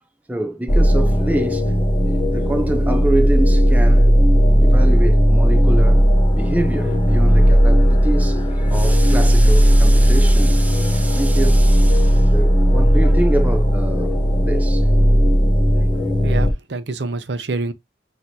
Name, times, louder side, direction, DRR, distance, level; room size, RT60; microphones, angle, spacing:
voice 1, 0.3-1.7 2.3-4.1 4.6-6.0 6.3-14.9 15.7-15.9, right 1 dB, 10° right, 0.5 m, -26 dB
sound 1, 0.7-16.5, equal, 25° left, 0.7 m, -15 dB
voice 2, 16.2-17.7, right 3 dB, 75° right, 0.6 m, -26 dB
6.1 x 2.8 x 2.6 m
head